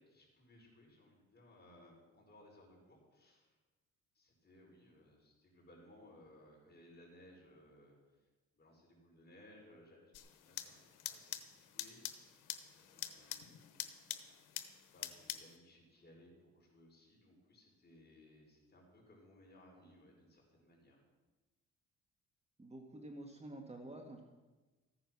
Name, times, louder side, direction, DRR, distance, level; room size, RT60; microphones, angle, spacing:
voice 1, 0.0-3.6 4.1-8.3 8.6-10.2 10.4-12.1 12.7-13.8 14.9-21.0, left 1 dB, 35° left, -1 dB, 5.5 m, -62 dB
sound 1, 10.1-15.6, left 12 dB, 90° left, 1.0 m, -46 dB
voice 2, 22.6-24.2, right 1 dB, 20° right, 2 dB, 1.7 m, -49 dB
14.5 x 9.8 x 6.1 m, 1.2 s
cardioid pair, 90°, 30 cm